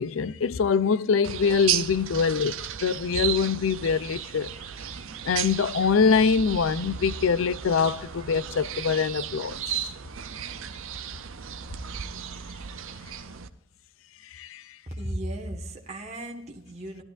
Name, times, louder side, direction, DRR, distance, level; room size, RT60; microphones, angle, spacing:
voice 1, 0.0-2.5 2.8-4.5 5.2-9.9 14.3-14.6, left 5 dB, 70° left, 0.4 m, -24 dB
sound 1, 1.2-13.5, right 9 dB, 70° right, 0.7 m, -34 dB
voice 2, 15.0-17.0, right 1 dB, 30° right, 1.5 m, -35 dB
16.5 x 12.5 x 2.5 m
head